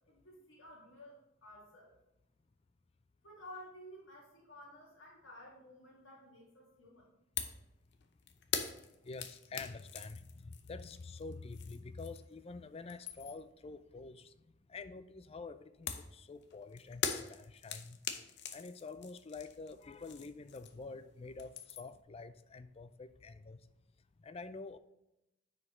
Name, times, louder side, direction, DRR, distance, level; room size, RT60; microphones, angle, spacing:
voice 1, 0.1-2.0 3.2-7.1, left 1 dB, 80° left, -4 dB, 2.1 m, -54 dB
sound 1, 7.4-7.6 7.9-12.4 12.7-13.5 15.9-21.0 21.2-22.0, left 7 dB, 60° left, 0.7 m, -42 dB
voice 2, 9.0-14.3 14.7-18.0 18.5-23.6 24.2-24.8, left 3 dB, 30° left, 12 dB, 0.4 m, -47 dB
9.6 x 5.0 x 3.2 m, 0.89 s
head